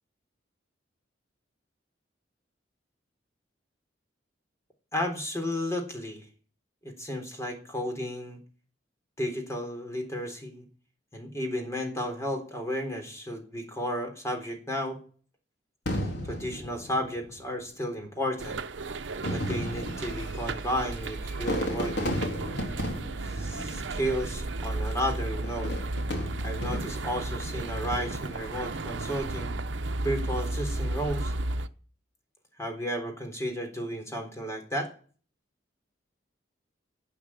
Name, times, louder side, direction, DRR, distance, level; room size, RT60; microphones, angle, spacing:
voice 1, 4.9-6.2 6.8-8.4 9.2-10.6 11.1-15.0 16.3-18.6 19.3-22.0 23.3-25.8 26.4-29.6 30.0-31.3 32.6-34.9, equal, 15° left, 4 dB, 3.8 m, -33 dB
Fireworks, 15.9-17.5 18.3-18.4 19.1-24.4 25.4-27.2 27.8-28.3, equal, 65° left, 3.7 m, -34 dB
sound 1, 18.4-31.7, right 2 dB, 75° right, 0.8 m, -34 dB
12.0 x 7.6 x 9.8 m, 0.41 s
head